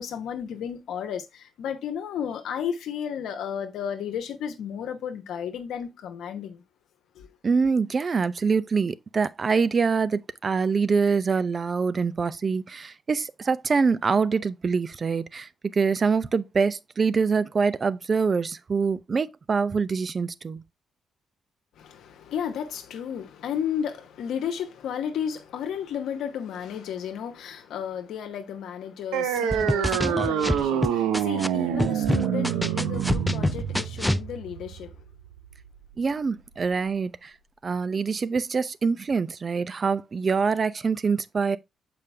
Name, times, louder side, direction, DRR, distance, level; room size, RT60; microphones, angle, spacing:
voice 1, 0.0-6.6 7.1-7.3 21.8-34.9, left 8 dB, 75° left, 1.0 m, -33 dB
voice 2, 7.4-20.6 36.0-37.3 37.6-41.6, right 5 dB, 45° right, 0.6 m, -25 dB
sound 1, 29.1-36.1, right 9 dB, 90° right, 0.7 m, -27 dB
sound 2, 29.5-31.5 31.8-34.2, equal, 5° left, 0.4 m, -25 dB
6.8 x 5.2 x 3.3 m
supercardioid pair, 60°, 0 cm